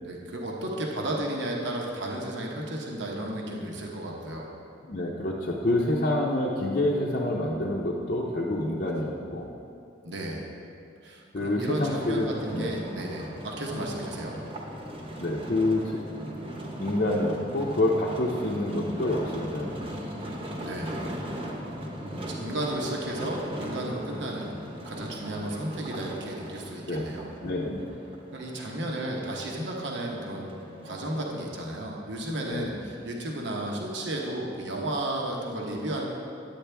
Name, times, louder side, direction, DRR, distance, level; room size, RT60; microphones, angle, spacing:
voice 1, 0.0-4.5 10.0-10.5 11.0-14.4 19.8-20.3 20.6-21.5 21.9-24.6 24.9-27.3 28.3-30.6 30.8-36.0, right 1 dB, 65° right, -1 dB, 1.1 m, -33 dB
voice 2, 4.9-9.5 11.3-12.3 12.5-12.7 15.2-16.0 16.8-19.8 26.9-27.1 27.4-27.9 32.5-32.8, left 1 dB, 45° left, -4 dB, 0.7 m, -27 dB
sound 1, 11.7-31.4, equal, 30° right, 1.0 m, -39 dB
10.5 x 8.7 x 3.4 m, 2.6 s
head